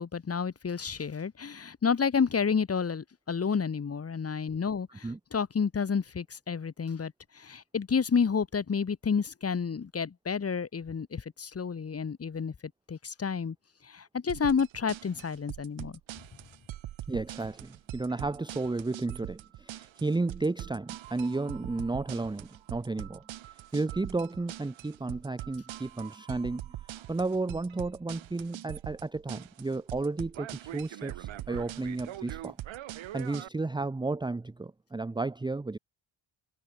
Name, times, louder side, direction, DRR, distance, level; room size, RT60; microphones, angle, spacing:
voice 1, 0.0-12.5 12.9-13.5 13.8-16.0, left 6 dB, 30° left, 4.9 m, -30 dB
sound 1, 14.3-33.5, right 13 dB, 75° right, 5.0 m, -42 dB
voice 2, 17.1-23.2 23.7-26.6 26.9-32.6 33.1-35.8, right 3 dB, 10° right, 1.0 m, -33 dB
cardioid pair, 150°, 47 cm